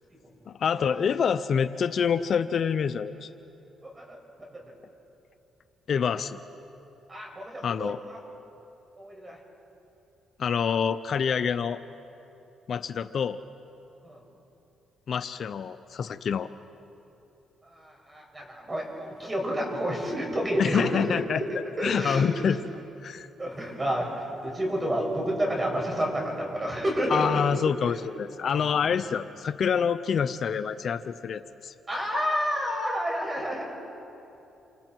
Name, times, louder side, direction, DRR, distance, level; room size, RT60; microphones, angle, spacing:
voice 1, 0.5-3.3 5.9-6.4 7.6-8.0 10.4-11.8 12.7-13.4 15.1-16.5 20.6-21.4 21.8-22.6 23.0-23.3 27.1-31.7, left 7 dB, 55° left, 12 dB, 0.6 m, -26 dB
voice 2, 3.8-4.2 4.5-4.6 7.1-8.2 9.0-9.4 14.0-14.2 17.7-21.1 21.3-21.5 21.8-22.5 23.4-27.4 27.8-28.0 28.5-29.0 31.9-33.6, equal, 20° right, 0 dB, 6.5 m, -30 dB
28.0 x 27.0 x 4.6 m, 2.9 s
cardioid pair, 90°, 0 cm